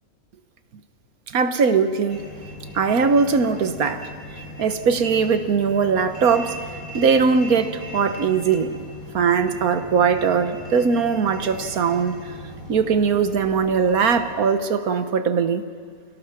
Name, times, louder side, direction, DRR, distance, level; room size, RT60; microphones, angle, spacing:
voice 1, 1.3-2.2 2.7-4.1 4.6-6.6 6.9-8.7 9.1-12.1 12.7-15.6, right 5 dB, 85° right, 9 dB, 1.7 m, -20 dB
sound 1, 2.1-14.3, left 1 dB, 75° left, 7.2 m, -39 dB
29.5 x 17.5 x 6.0 m, 2.2 s
omnidirectional pair, 1.5 m